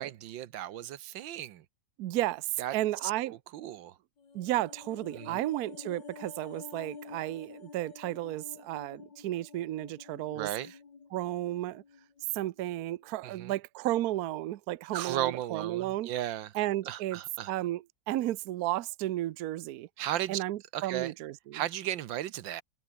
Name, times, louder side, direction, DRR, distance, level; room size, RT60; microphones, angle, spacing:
voice 1, 0.0-1.6 2.6-2.7 3.0-3.9 5.1-5.4 10.3-10.7 13.2-13.5 14.9-16.5 16.9-17.5 20.0-20.4 20.7-21.1 21.5-22.6, right 12 dB, 90° right, 1.7 m, -35 dB
voice 2, 2.0-3.4 4.3-10.5 11.1-11.8 12.3-16.1 16.5-17.2 17.5-19.9 20.3-21.6, right 15 dB, 65° right, 1.0 m, -33 dB
sound 1, 4.2-12.6 12.9-13.1, left 5 dB, 70° left, 3.3 m, -50 dB
omnidirectional pair, 2.0 m